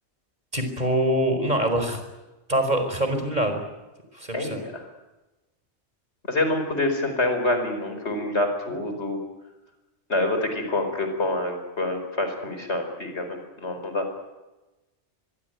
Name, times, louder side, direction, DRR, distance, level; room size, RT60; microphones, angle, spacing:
voice 1, 0.5-2.0 2.5-3.6 4.1-4.6, right 1 dB, 40° right, 6 dB, 4.8 m, -24 dB
voice 2, 4.3-4.9 6.3-9.2 10.1-14.1, left 2 dB, 75° left, 6 dB, 5.1 m, -26 dB
25.0 x 22.5 x 9.4 m, 1.1 s
omnidirectional pair, 1.2 m